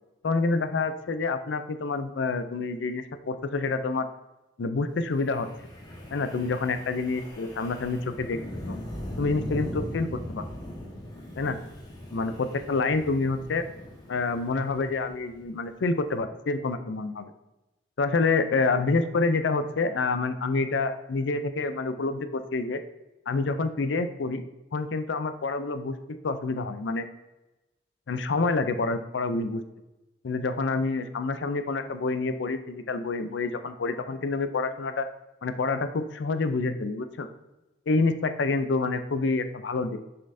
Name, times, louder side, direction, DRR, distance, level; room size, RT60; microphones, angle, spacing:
voice 1, 0.2-4.1 4.6-5.5 6.1-8.4 8.7-8.8 9.2-10.4 11.4-11.6 12.1-13.6 14.1-17.3 18.0-22.8 23.3-24.4 24.7-27.0 28.1-29.6 30.2-35.1 35.4-37.3 37.9-40.0, left 3 dB, 70° left, 10 dB, 0.5 m, -27 dB
Wind, 5.1-15.4, left 1 dB, 20° left, 1.4 m, -40 dB
6.7 x 5.4 x 2.7 m, 1.0 s
head